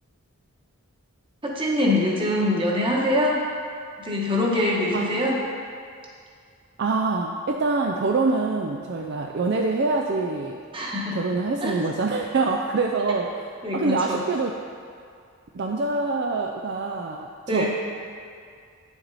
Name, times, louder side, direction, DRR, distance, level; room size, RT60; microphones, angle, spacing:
voice 1, 1.4-3.4 4.0-5.4 10.7-11.2 11.6-11.8 13.6-14.2 17.5-17.7, left 1 dB, 25° right, -3 dB, 1.2 m, -24 dB
voice 2, 6.8-10.6 11.1-13.3 13.7-14.5 15.5-17.7, right 3 dB, 50° right, 2 dB, 0.4 m, -25 dB
9.3 x 7.0 x 4.1 m, 2.2 s
head